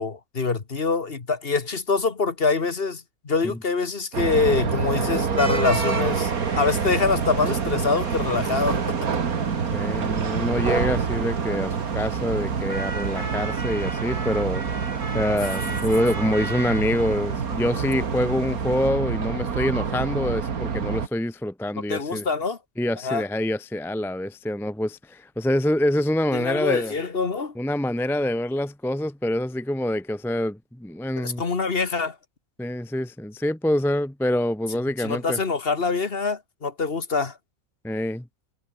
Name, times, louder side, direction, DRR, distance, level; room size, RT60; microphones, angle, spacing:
voice 1, 0.0-8.8 21.9-22.6 23.0-23.2 26.3-27.6 31.2-32.2 35.0-37.4, left 4 dB, 40° left, 1.8 m, -25 dB
sound 1, 4.1-21.1, right 6 dB, 80° right, 2.2 m, -27 dB
sound 2, 5.4-18.9, right 3 dB, 55° right, 4.3 m, -38 dB
voice 2, 9.7-14.6 15.1-22.3 22.8-26.9 27.6-31.4 32.6-35.4 37.8-38.3, left 1 dB, ahead, 0.5 m, -26 dB
omnidirectional pair, 1.5 m